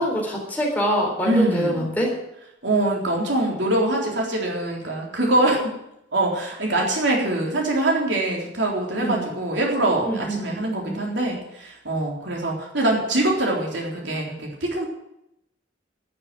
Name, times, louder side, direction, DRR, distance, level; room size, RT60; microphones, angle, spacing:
voice 1, 0.0-2.1 9.0-9.2 10.0-11.0, equal, 10° left, -2 dB, 3.9 m, -25 dB
voice 2, 1.2-1.9 2.6-5.7 6.1-14.9, right 1 dB, 70° right, -1 dB, 3.7 m, -23 dB
12.5 x 7.0 x 9.4 m, 0.83 s
head